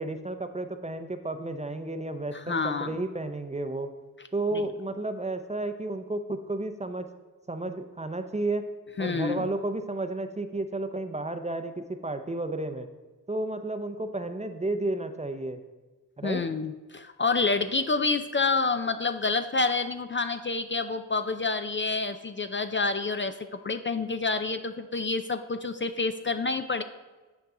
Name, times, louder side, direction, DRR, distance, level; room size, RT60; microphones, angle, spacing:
voice 1, 0.0-3.9 4.3-7.1 7.5-8.7 9.0-12.9 13.3-15.6 16.2-16.4, right 2 dB, 20° right, 8 dB, 0.5 m, -32 dB
voice 2, 2.3-3.0 9.0-9.5 16.2-26.8, left 4 dB, 35° left, 9 dB, 0.4 m, -28 dB
9.4 x 4.6 x 3.7 m, 1.2 s
wide cardioid pair, 55°, 33 cm